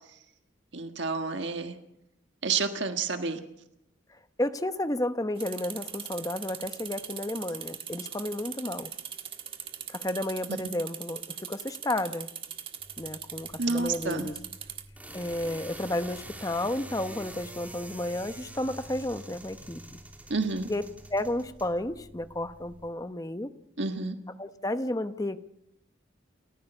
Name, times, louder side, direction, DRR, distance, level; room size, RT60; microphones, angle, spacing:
voice 1, 0.7-1.7 2.4-3.4 10.5-10.6 13.6-14.3 20.3-20.7 23.8-24.1, right 4 dB, 65° right, 6 dB, 1.6 m, -29 dB
voice 2, 4.1-8.9 9.9-12.3 13.0-14.3 15.1-19.8 20.7-20.8 21.1-23.5 24.4-25.4, left 1 dB, 20° left, 10 dB, 0.9 m, -32 dB
sound 1, 5.4-14.8, right 8 dB, 30° right, 1.7 m, -41 dB
sound 2, 12.8-22.9, right 1 dB, 10° right, 3.0 m, -46 dB
29.5 x 14.5 x 6.9 m, 0.80 s
head